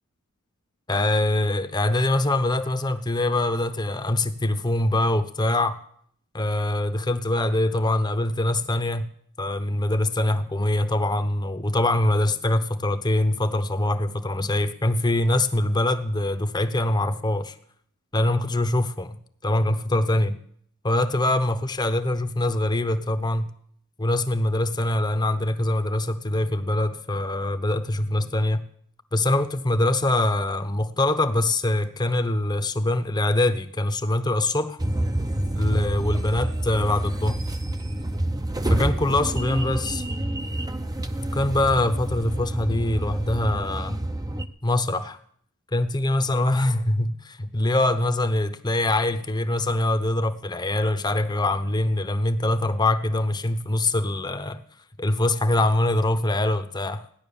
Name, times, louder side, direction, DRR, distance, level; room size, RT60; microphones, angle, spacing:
voice 1, 0.9-5.8 6.3-9.1 9.4-17.5 18.1-19.2 19.4-20.4 20.8-23.5 24.0-28.6 29.1-34.8 35.5-37.4 38.7-40.0 41.3-44.0 44.6-45.2 45.7-54.6 55.0-57.0, left 1 dB, 20° left, 0.9 m, -23 dB
sound 1, 34.8-44.5, right 1 dB, 15° right, 0.7 m, -28 dB
16.5 x 10.5 x 7.0 m
head